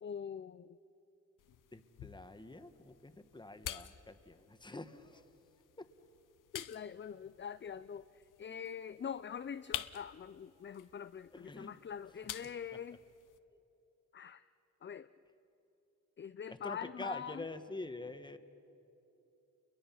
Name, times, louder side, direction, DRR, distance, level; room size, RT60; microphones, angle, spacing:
voice 1, 0.0-0.8 6.5-13.0 14.1-14.4 14.8-15.1 16.2-17.5, left 7 dB, 35° left, 12 dB, 0.5 m, -44 dB
sound 1, 1.4-13.4, left 11 dB, 90° left, 0.7 m, -50 dB
voice 2, 1.7-5.2 5.8-5.9 11.3-11.7 13.5-13.6 16.5-18.4, left 2 dB, 15° left, 9 dB, 1.3 m, -46 dB
29.5 x 22.5 x 5.7 m, 2.9 s
cardioid pair, 80°, 31 cm